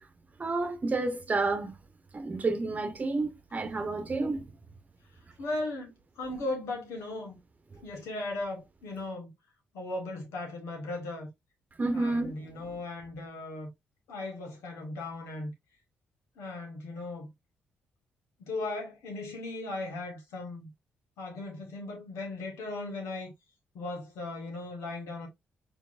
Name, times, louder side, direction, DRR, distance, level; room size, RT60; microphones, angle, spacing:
voice 1, 0.4-1.7 2.1-4.4 11.8-12.3, right 3 dB, 35° right, 1.0 m, -30 dB
voice 2, 5.4-5.9 6.2-7.4 7.8-9.3 9.7-11.3 11.9-13.7 14.1-15.5 16.4-17.3 18.4-20.7 21.2-23.3 23.7-25.3, left 2 dB, 80° left, 1.6 m, -37 dB
4.5 x 3.4 x 2.5 m
supercardioid pair, 60°, 5 cm